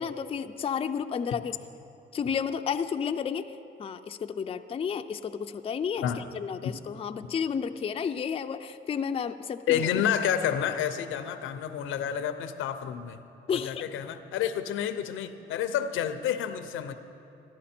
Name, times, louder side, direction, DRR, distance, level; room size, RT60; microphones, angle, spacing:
voice 1, 0.0-1.6 2.1-9.8 13.5-13.9, left 7 dB, 30° left, 8 dB, 0.4 m, -32 dB
voice 2, 9.7-13.2 13.5-16.9, left 9 dB, 85° left, 10 dB, 0.6 m, -29 dB
14.0 x 11.0 x 4.3 m, 2.8 s
cardioid pair, 90°, 20 cm